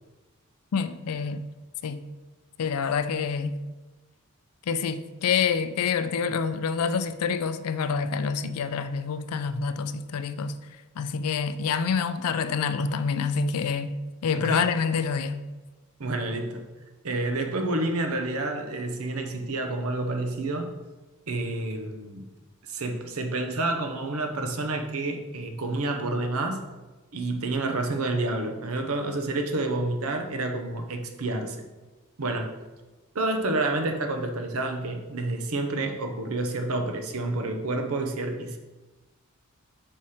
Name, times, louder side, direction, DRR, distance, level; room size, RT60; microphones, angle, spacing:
voice 1, 0.7-1.4 1.8-2.0 2.6-3.6 4.7-10.6 11.0-14.0 14.2-15.4, left 6 dB, 85° left, 0.4 m, -27 dB
voice 2, 14.3-14.7 16.0-16.7 17.0-20.8 21.3-22.2 22.7-26.6 27.1-31.6 32.2-32.5 33.1-38.6, right 2 dB, 75° right, 0.8 m, -29 dB
5.4 x 4.8 x 4.3 m
head